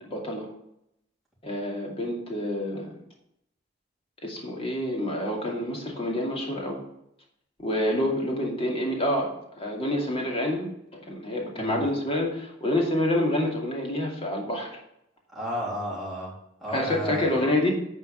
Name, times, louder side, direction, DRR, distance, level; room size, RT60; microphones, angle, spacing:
voice 1, 0.1-0.5 1.4-2.9 4.2-6.8 7.6-14.7 16.7-17.7, left 1 dB, 30° left, -1 dB, 2.4 m, -27 dB
voice 2, 15.3-16.3 16.6-17.5, equal, ahead, -7 dB, 3.4 m, -32 dB
10.0 x 4.5 x 7.0 m, 0.79 s
head